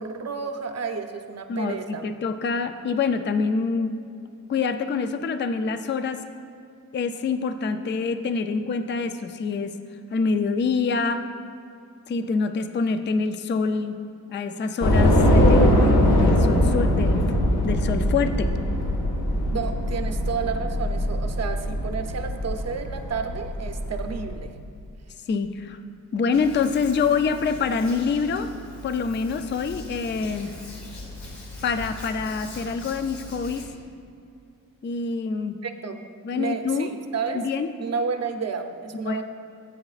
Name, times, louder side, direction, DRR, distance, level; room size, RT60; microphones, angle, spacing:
voice 1, 0.0-2.1 19.5-24.5 35.6-36.0 36.4-37.5 37.8-39.2, right 5 dB, 45° right, 6 dB, 0.7 m, -31 dB
voice 2, 1.5-4.0 4.5-6.3 6.9-9.7 10.1-11.2 12.1-14.0 14.3-17.2 17.6-18.5 25.3-25.8 26.1-28.5 28.8-30.5 31.6-33.7 34.8-35.6 36.2-36.9 37.3-37.7 39.0-39.2, left 5 dB, 35° left, 9 dB, 0.4 m, -26 dB
Train / Subway metro underground, 14.8-24.2, equal, 80° left, 2.1 m, -21 dB
Hands, 26.3-33.7, left 2 dB, 55° left, 2.1 m, -41 dB
16.5 x 8.6 x 2.4 m, 2.5 s
wide cardioid pair, 155°, 35 cm